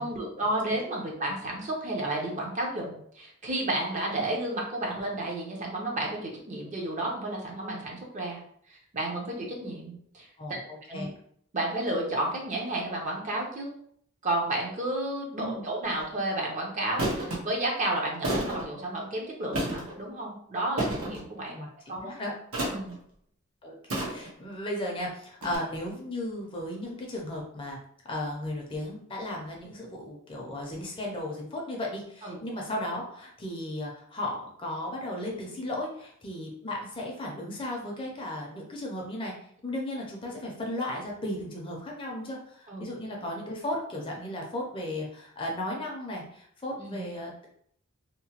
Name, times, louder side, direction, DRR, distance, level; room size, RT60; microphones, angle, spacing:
voice 1, 0.0-8.4 8.7-10.6 10.9-11.1 11.5-13.7 14.2-22.1 22.7-23.0 32.2-32.4 42.7-42.9 46.8-47.0, right 1 dB, 35° right, -1 dB, 0.6 m, -32 dB
voice 2, 10.4-11.1 15.4-15.7 21.5-21.7 22.0-22.3 23.6-27.8 28.1-39.3 39.6-47.4, left 1 dB, 25° left, -1 dB, 0.5 m, -35 dB
sound 1, 15.8-16.0 17.0-17.4 18.2-18.7 19.5-20.0 20.8-21.2 22.5-22.9 23.9-24.4 25.4-25.6, right 1 dB, 85° right, 0.8 m, -30 dB
2.8 x 2.1 x 2.8 m, 0.65 s
head